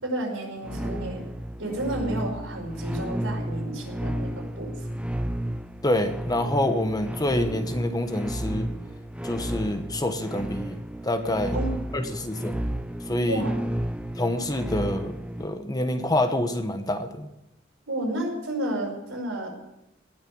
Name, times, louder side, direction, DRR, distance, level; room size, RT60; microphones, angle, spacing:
voice 1, 0.0-1.2 1.6-4.7 11.5-11.8 13.2-13.5 17.9-19.5, right 1 dB, 70° right, 0 dB, 5.5 m, -31 dB
sound 1, 0.6-15.5, equal, 5° right, 0.5 m, -32 dB
voice 2, 5.8-8.7 9.2-11.6 11.9-12.6 13.1-13.5 14.2-17.3, left 1 dB, 20° left, 7 dB, 1.1 m, -27 dB
19.0 x 6.6 x 9.4 m, 0.89 s
head